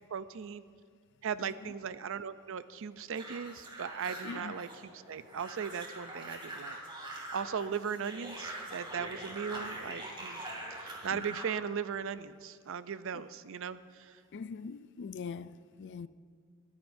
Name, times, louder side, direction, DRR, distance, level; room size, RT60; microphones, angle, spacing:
voice 1, 0.1-0.6 1.2-4.7 5.1-10.4 10.7-14.2, right 7 dB, 65° right, 0.5 m, -38 dB
voice 2, 1.4-1.7 4.2-4.6 11.1-11.4 13.1-13.3 14.3-16.1, left 5 dB, 55° left, 0.4 m, -43 dB
sound 1, 3.2-11.5, right 1 dB, 25° right, 2.7 m, -43 dB
22.0 x 14.5 x 2.6 m
head